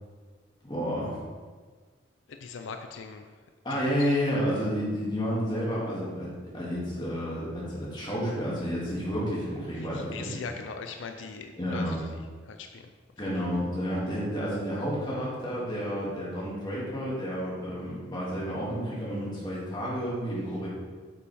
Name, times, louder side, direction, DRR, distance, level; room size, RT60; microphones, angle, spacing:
voice 1, 0.6-1.2 3.6-6.3 6.5-10.3 11.6-12.0 13.2-20.7, equal, 25° left, -7 dB, 2.2 m, -30 dB
voice 2, 2.3-3.4 3.7-4.2 9.7-12.9, left 5 dB, 80° left, 6 dB, 0.4 m, -41 dB
8.4 x 5.3 x 3.4 m, 1.5 s
head